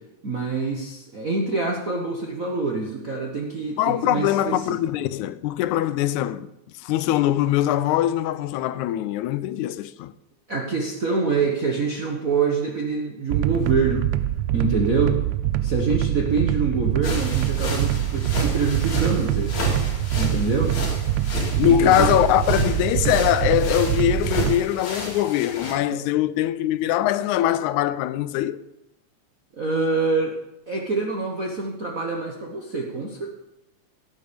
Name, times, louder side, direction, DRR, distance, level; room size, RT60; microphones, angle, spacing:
voice 1, 0.2-4.7 10.5-14.1 14.5-15.2 15.6-19.7 20.2-20.7 21.7-22.1 25.9-26.0 29.5-30.3 30.7-33.3, right 4 dB, 50° right, 0.9 m, -25 dB
voice 2, 3.8-6.5 6.8-10.1 21.6-28.6, left 12 dB, 80° left, 2.0 m, -22 dB
sound 1, 13.3-24.6, right 13 dB, 80° right, 1.7 m, -24 dB
sound 2, 17.0-25.7, left 2 dB, 65° left, 4.2 m, -32 dB
17.5 x 8.7 x 5.2 m
omnidirectional pair, 3.4 m